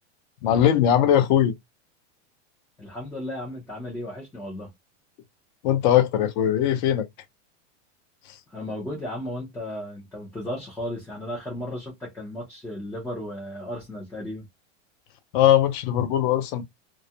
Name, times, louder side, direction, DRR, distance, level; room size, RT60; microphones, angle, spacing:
voice 1, 0.4-1.5 5.6-7.1 8.3-8.4 15.3-16.6, left 10 dB, 45° left, 0.6 m, -20 dB
voice 2, 2.8-4.7 8.5-14.4, left 1 dB, 5° left, 0.4 m, -34 dB
2.3 x 2.1 x 2.7 m
supercardioid pair, 160°, 35 cm